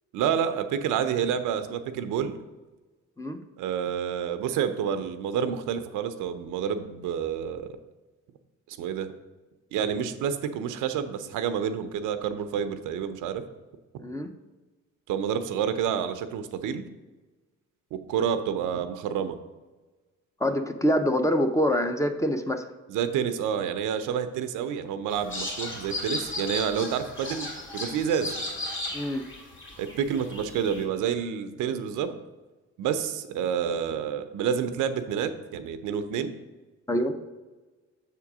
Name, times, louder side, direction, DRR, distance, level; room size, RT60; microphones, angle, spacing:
voice 1, 0.1-2.3 3.6-7.7 8.7-9.1 9.7-13.4 15.1-16.8 17.9-19.4 22.9-27.5 27.7-28.3 29.8-32.2 32.8-36.3, right 8 dB, 90° right, 10 dB, 0.6 m, -29 dB
voice 2, 20.4-22.6 28.9-29.2 36.9-37.2, equal, 10° left, 7 dB, 0.5 m, -25 dB
sound 1, 25.1-30.8, left 1 dB, 40° left, 2.2 m, -35 dB
6.9 x 3.7 x 6.0 m, 1.2 s
cardioid pair, 90°, 30 cm